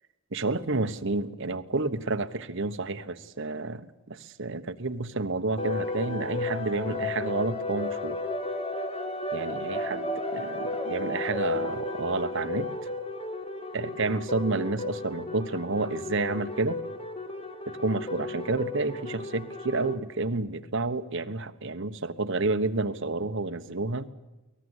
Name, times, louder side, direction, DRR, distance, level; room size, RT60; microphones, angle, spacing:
voice 1, 0.3-8.2 9.3-12.7 13.7-16.8 17.7-24.1, right 3 dB, 60° right, 10 dB, 1.2 m, -30 dB
sound 1, 5.6-20.0, left 2 dB, 25° left, 2.2 m, -33 dB
23.5 x 19.0 x 8.2 m, 1.1 s
head